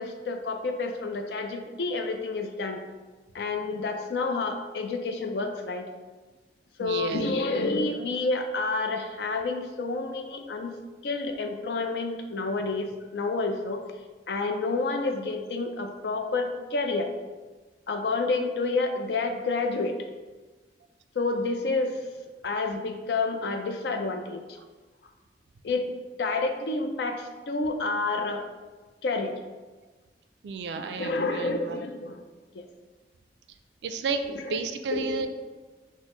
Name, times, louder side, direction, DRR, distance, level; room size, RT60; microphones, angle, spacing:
voice 1, 0.0-2.8 3.3-5.9 6.8-10.7 11.0-13.8 14.3-17.1 17.9-20.0 21.1-22.1 22.4-24.6 25.6-28.4 29.0-29.4 30.8-32.2 32.5-32.7 34.3-34.5 34.9-35.3, left 3 dB, 65° left, 5 dB, 0.4 m, -29 dB
voice 2, 6.8-7.3 30.4-31.8 33.8-35.3, right 4 dB, 70° right, 8 dB, 0.3 m, -32 dB
6.1 x 2.0 x 3.0 m, 1.3 s
head